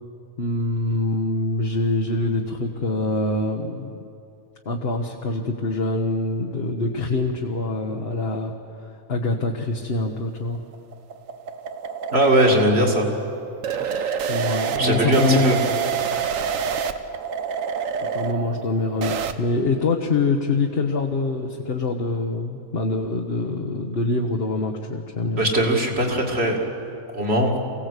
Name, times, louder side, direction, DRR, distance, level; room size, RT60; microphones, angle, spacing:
voice 1, 0.4-4.0 4.6-10.6 14.3-15.9 18.1-25.4, left 3 dB, 45° left, 2 dB, 1.3 m, -25 dB
sound 1, 10.4-19.3, right 7 dB, 70° right, 1.2 m, -27 dB
voice 2, 12.1-13.1 13.8-14.2 14.8-15.6 25.4-26.6 27.1-27.5, right 1 dB, 45° right, 0 dB, 2.7 m, -20 dB
24.0 x 16.5 x 8.1 m, 2.7 s
omnidirectional pair, 1.5 m